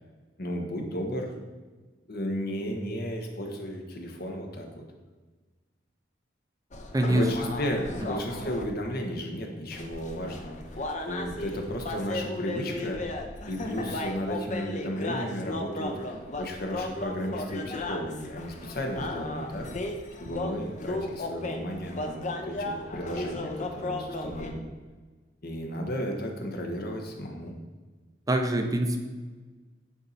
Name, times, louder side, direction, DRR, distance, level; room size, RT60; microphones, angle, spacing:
voice 1, 0.4-1.3 2.1-4.8 7.1-13.2 13.5-19.7 20.2-24.7 25.4-27.5, equal, 55° left, 2 dB, 1.3 m, -34 dB
sound 1, 6.7-8.6 9.7-24.5, left 2 dB, 40° left, 0.8 m, -35 dB
voice 2, 6.9-7.5 28.3-29.0, right 1 dB, 20° right, 4 dB, 0.6 m, -25 dB
10.0 x 4.4 x 4.1 m, 1.3 s
head